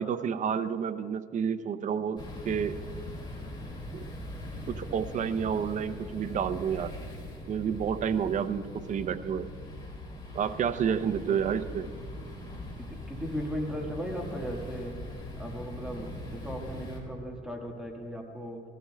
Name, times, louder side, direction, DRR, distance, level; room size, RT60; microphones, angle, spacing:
voice 1, 0.0-2.8 3.9-4.0 4.7-6.9 7.5-9.5 10.3-11.9, right 7 dB, 45° right, 12 dB, 0.6 m, -30 dB
sound 1, 2.2-17.0, left 1 dB, 25° left, 2.7 m, -41 dB
voice 2, 12.8-15.0 15.4-18.6, equal, 5° right, 0 dB, 1.5 m, -37 dB
19.5 x 14.5 x 2.2 m, 2.2 s
cardioid pair, 110°, 17 cm